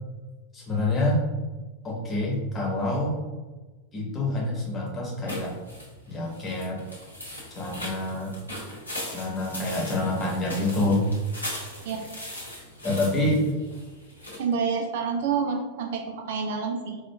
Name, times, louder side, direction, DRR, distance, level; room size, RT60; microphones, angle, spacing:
voice 1, 0.5-1.2 1.8-3.2 3.9-5.5 6.1-6.8 7.5-8.3 9.1-11.1 12.8-13.4, left 2 dB, 20° left, -3 dB, 1.0 m, -27 dB
sound 1, 5.3-14.4, left 1 dB, 85° left, 0.9 m, -39 dB
voice 2, 14.4-17.0, right 5 dB, 55° right, 3 dB, 0.4 m, -28 dB
4.3 x 2.4 x 2.2 m, 1.2 s
figure-of-eight pair, 90°, 0 cm